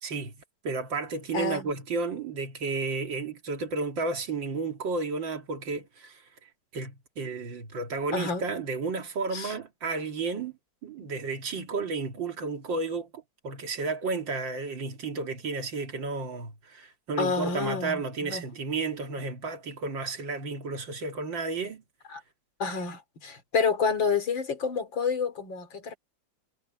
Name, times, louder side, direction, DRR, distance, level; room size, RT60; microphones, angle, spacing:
voice 1, 0.0-0.3 0.6-10.5 10.8-21.8, right 4 dB, 80° right, 3.0 m, -32 dB
voice 2, 1.3-1.7 8.1-8.4 9.3-9.5 11.0-11.1 17.2-18.4 22.1-22.2 22.6-26.0, left 5 dB, 85° left, 3.4 m, -29 dB
omnidirectional pair, 2.0 m